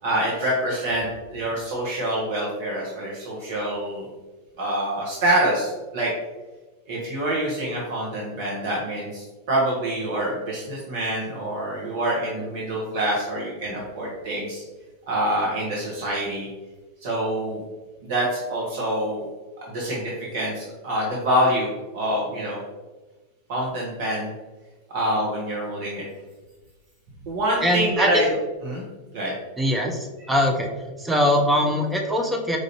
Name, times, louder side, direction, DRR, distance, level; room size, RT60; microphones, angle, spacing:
voice 1, 0.0-4.1 4.6-6.1 6.9-14.6 15.1-16.5 17.0-17.6 18.0-19.3 19.7-22.6 23.5-24.3 24.9-26.0 27.3-28.3 28.6-28.8 29.1-29.3, right 1 dB, 50° right, -4 dB, 0.9 m, -26 dB
voice 2, 27.6-28.2 29.6-30.7 31.0-32.6, equal, 5° right, 2 dB, 0.5 m, -22 dB
4.7 x 2.5 x 2.8 m, 1.2 s
figure-of-eight pair, 90°, 0 cm